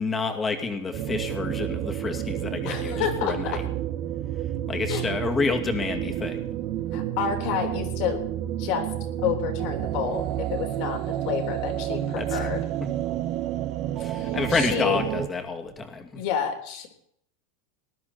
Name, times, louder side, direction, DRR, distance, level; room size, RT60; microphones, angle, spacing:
voice 1, 0.0-3.6 4.7-6.4 12.2-12.5 14.0-16.1, left 4 dB, 20° left, 4 dB, 2.3 m, -29 dB
sound 1, 0.9-15.3, right 12 dB, 50° right, 1.1 m, -30 dB
voice 2, 2.7-3.6 4.9-5.1 6.9-8.2 8.6-8.9 9.2-12.6 14.2-15.0 16.1-16.9, left 8 dB, 60° left, 3 dB, 3.7 m, -29 dB
19.5 x 11.0 x 4.2 m, 0.69 s
hypercardioid pair, 115°, 0 cm